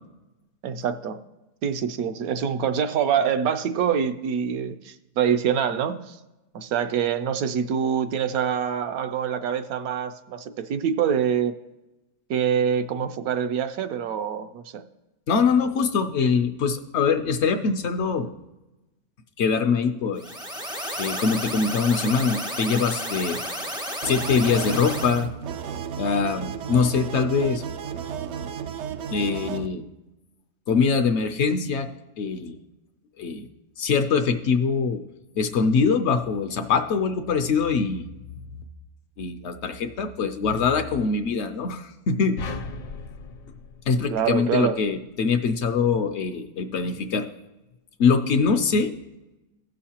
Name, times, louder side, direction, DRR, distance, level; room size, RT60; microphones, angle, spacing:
voice 1, 0.6-1.2 1.6-6.2 6.5-11.5 12.3-14.8 44.1-44.8, right 8 dB, 70° right, 9 dB, 1.0 m, -25 dB
voice 2, 15.3-18.3 19.4-20.2 21.0-23.4 24.0-25.3 26.0-27.6 29.1-29.9 30.7-31.9 32.2-32.6 33.2-33.5 33.8-35.0 35.4-38.1 39.2-42.5 43.9-47.3 48.0-48.9, left 5 dB, 65° left, 7 dB, 0.7 m, -23 dB
sound 1, 20.2-25.3, equal, 5° right, 0.3 m, -32 dB
sound 2, 24.0-29.7, right 8 dB, 90° right, 0.6 m, -33 dB
sound 3, 42.4-44.8, left 4 dB, 80° left, 1.3 m, -37 dB
16.5 x 6.4 x 2.9 m, 1.0 s
omnidirectional pair, 1.7 m